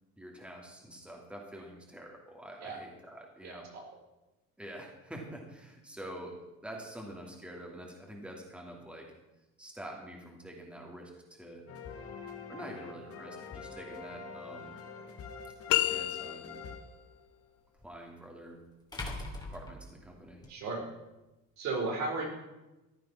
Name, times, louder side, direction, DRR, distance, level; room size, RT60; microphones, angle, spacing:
voice 1, 0.2-3.7 4.6-6.4 6.6-9.1 9.6-11.6 12.5-14.7 15.8-16.6 17.8-18.6 19.5-20.4, right 1 dB, 5° right, 0 dB, 2.7 m, -46 dB
voice 2, 3.4-3.8 20.5-20.9 21.6-22.3, right 3 dB, 65° right, 1 dB, 4.3 m, -35 dB
sound 1, 11.7-17.6, left 5 dB, 50° left, 2.3 m, -46 dB
sound 2, 15.1-15.2 17.8-17.9 18.9-20.5, left 2 dB, 15° left, 3.0 m, -41 dB
sound 3, 15.7-16.8, left 15 dB, 85° left, 1.2 m, -30 dB
14.5 x 10.0 x 6.1 m, 1.0 s
cardioid pair, 115°, 31 cm